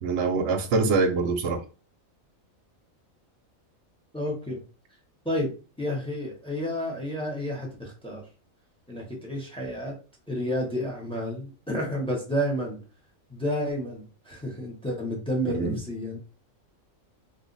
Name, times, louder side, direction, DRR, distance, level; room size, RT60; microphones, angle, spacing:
voice 1, 0.0-1.6 15.5-15.8, right 4 dB, 65° right, 0.8 m, -24 dB
voice 2, 4.1-4.6 5.2-5.5 5.8-8.2 8.9-9.9 10.3-12.8 13.3-16.2, equal, 5° left, 0.7 m, -30 dB
2.5 x 2.4 x 3.9 m
omnidirectional pair, 1.4 m